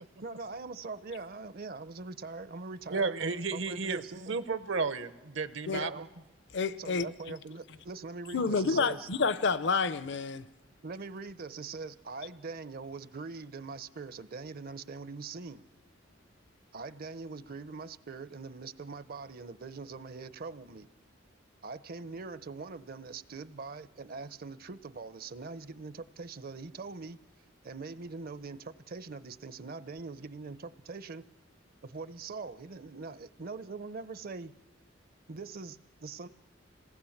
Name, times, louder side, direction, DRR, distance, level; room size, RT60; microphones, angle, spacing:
voice 1, 0.2-4.4 5.7-6.1 6.8-9.1 10.8-15.6 16.7-20.9 21.6-27.2 27.6-31.2 31.8-34.5 35.3-36.3, right 4 dB, 50° right, 0.7 m, -42 dB
voice 2, 2.9-4.0 4.3-5.9, right 4 dB, 75° right, 1.0 m, -32 dB
voice 3, 6.5-7.1 8.3-10.5, left 4 dB, 65° left, 0.7 m, -29 dB
27.0 x 18.5 x 7.2 m
head